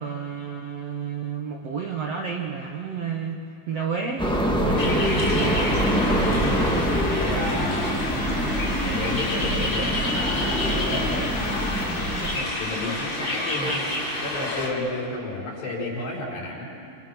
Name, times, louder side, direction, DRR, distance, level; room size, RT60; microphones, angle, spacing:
voice 1, 0.0-3.4 3.7-4.3 4.6-6.1, right 6 dB, 65° right, 1 dB, 1.6 m, -31 dB
sound 1, 4.2-12.4, equal, 5° left, 0.4 m, -25 dB
sound 2, 4.7-14.7, left 1 dB, 25° left, 3.7 m, -29 dB
voice 2, 6.5-8.0 8.8-13.9 14.2-16.7, left 2 dB, 75° left, -4 dB, 7.8 m, -32 dB
28.0 x 27.0 x 6.1 m, 2.6 s
omnidirectional pair, 4.5 m